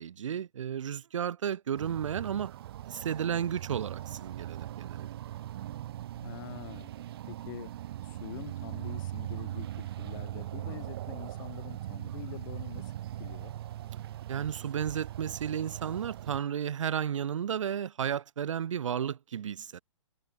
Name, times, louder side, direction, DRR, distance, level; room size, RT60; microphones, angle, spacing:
voice 1, 0.0-2.5 2.9-5.1 14.3-19.8, right 9 dB, 75° right, 0.6 m, -33 dB
sound 1, 1.8-16.4, right 13 dB, 50° right, 1.4 m, -40 dB
voice 2, 6.1-6.9 7.3-7.7 8.0-13.5, left 19 dB, 40° left, 4.3 m, -46 dB
hypercardioid pair, 140°, 16 cm